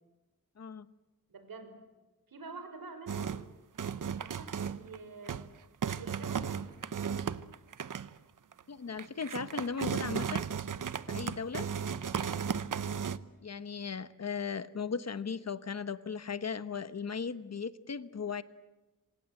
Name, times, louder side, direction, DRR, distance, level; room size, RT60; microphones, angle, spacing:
voice 1, 1.3-1.8 2.3-3.4 4.0-5.5 5.9-6.7 12.2-12.6, right 3 dB, 80° right, 8 dB, 5.4 m, -47 dB
sound 1, 3.1-3.5 3.8-5.0 5.3-5.5 5.8-8.1 8.5-8.6 9.0-13.2, right 7 dB, 65° right, 0.9 m, -35 dB
voice 2, 8.7-10.4 11.1-11.7 13.4-18.4, left 5 dB, 50° left, 14 dB, 1.1 m, -37 dB
27.0 x 26.5 x 7.8 m, 1.1 s
wide cardioid pair, 140°, 34 cm